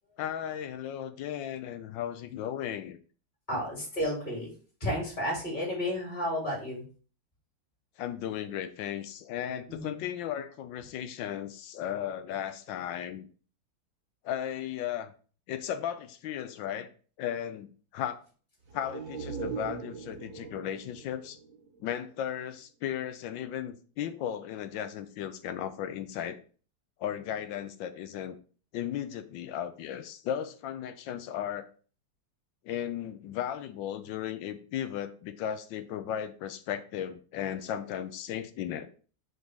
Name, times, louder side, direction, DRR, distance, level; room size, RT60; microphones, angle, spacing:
voice 1, 0.2-3.0 3.5-3.6 8.0-13.3 14.2-15.1 15.5-16.9 17.2-18.2 18.7-21.4 21.8-26.4 27.0-28.4 28.7-31.7 32.6-38.9, left 10 dB, 80° left, 11 dB, 1.4 m, -35 dB
voice 2, 3.5-4.5 4.8-6.8 9.7-10.0, equal, 25° left, -3 dB, 3.1 m, -32 dB
sound 1, 18.6-22.4 22.7-22.8, right 5 dB, 90° right, 1.9 m, -41 dB
5.1 x 4.0 x 4.8 m, 0.39 s
omnidirectional pair, 2.0 m